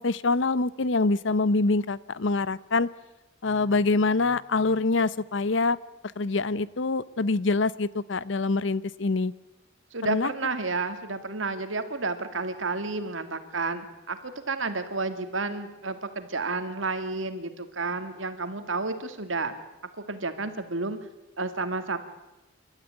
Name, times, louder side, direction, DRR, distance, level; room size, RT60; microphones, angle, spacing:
voice 1, 0.0-2.9 3.4-5.8 6.2-9.3 10.1-10.3, left 3 dB, 65° left, 19 dB, 0.7 m, -25 dB
voice 2, 9.9-19.5 20.0-21.0 21.4-22.0, right 3 dB, 75° right, 9 dB, 2.2 m, -31 dB
28.0 x 13.0 x 9.9 m, 1.0 s
head